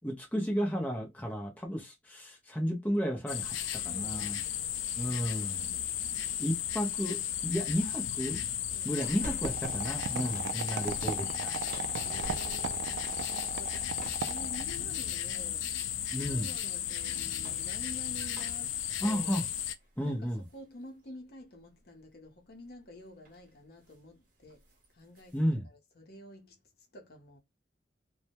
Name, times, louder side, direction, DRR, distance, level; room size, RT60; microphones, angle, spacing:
voice 1, 0.0-4.4 5.0-5.7 6.4-8.4 8.8-11.6 16.1-16.5 19.0-19.5 20.0-20.4 25.3-25.7, equal, 10° left, 0.5 m, -33 dB
sound 1, 3.3-19.7, left 10 dB, 85° left, 0.3 m, -35 dB
voice 2, 3.9-4.5 8.7-9.0 10.2-10.7 12.0-15.7 16.0-19.5 20.0-24.6 24.9-25.4 26.0-26.6 26.9-27.4, left 1 dB, 55° left, 0.7 m, -49 dB
sound 2, 9.0-9.8 10.2-12.9 14.0-14.4 15.4-15.9 17.1-20.6 21.0-21.1 22.7-22.9 23.2-23.5 23.8-24.1 24.4-25.4, right 1 dB, 45° right, 0.9 m, -49 dB
sound 3, 9.4-14.9, right 6 dB, 70° right, 0.3 m, -38 dB
2.2 x 2.0 x 2.8 m
head